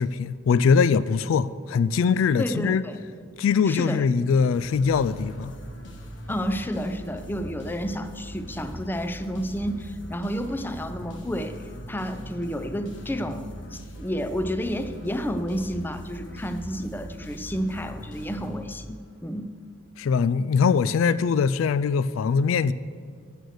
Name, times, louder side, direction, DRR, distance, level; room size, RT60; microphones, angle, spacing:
voice 1, 0.0-2.8 3.4-5.5 20.0-22.7, left 5 dB, 85° left, 0.3 m, -22 dB
voice 2, 2.4-3.0 3.7-4.0 6.3-19.0 19.2-19.5, equal, 10° left, 0.5 m, -30 dB
sound 1, 4.5-19.1, equal, 65° left, 1.5 m, -40 dB
13.0 x 7.9 x 6.4 m
head